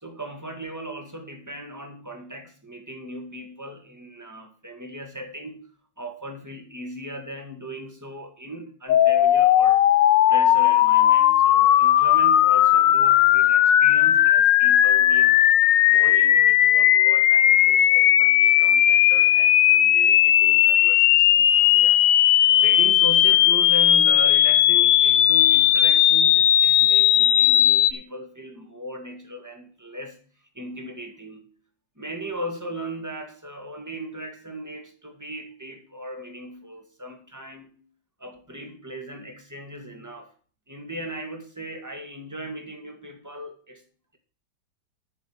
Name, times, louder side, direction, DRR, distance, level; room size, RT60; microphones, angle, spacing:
voice 1, 0.0-5.6 6.0-9.8 10.3-15.4 15.8-30.2 30.5-31.5 32.0-37.8 38.2-40.3 40.7-43.8, right 1 dB, 10° right, 4 dB, 2.1 m, -37 dB
sound 1, 8.9-27.9, left 12 dB, 80° left, 1.4 m, -17 dB
11.5 x 6.5 x 6.0 m, 0.42 s
omnidirectional pair, 2.0 m